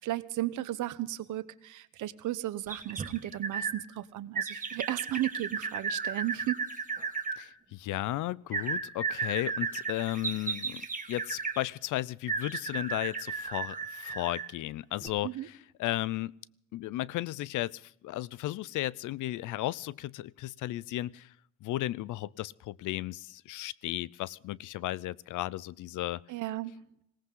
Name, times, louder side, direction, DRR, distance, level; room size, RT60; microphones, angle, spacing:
voice 1, 0.0-6.6 15.2-15.5 26.3-26.7, right 15 dB, 80° right, 14 dB, 1.0 m, -34 dB
sound 1, 2.7-3.8 4.3-7.4 8.5-11.6 12.3-14.5 15.0-15.1, right 5 dB, 25° right, 1.8 m, -34 dB
voice 2, 7.4-16.3 16.7-21.3 21.6-26.2, left 15 dB, 80° left, 22 dB, 0.6 m, -35 dB
20.0 x 18.0 x 3.8 m, 0.75 s
cardioid pair, 90°, 30 cm